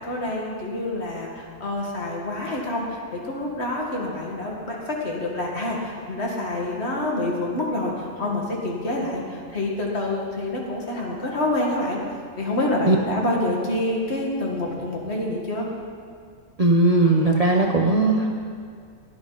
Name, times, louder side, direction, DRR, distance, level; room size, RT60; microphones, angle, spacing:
voice 1, 0.0-12.0 12.4-15.7, left 1 dB, 50° left, -2 dB, 2.1 m, -27 dB
voice 2, 16.6-18.4, right 2 dB, 35° right, 0 dB, 0.7 m, -18 dB
15.5 x 11.0 x 4.0 m, 2.1 s
omnidirectional pair, 1.4 m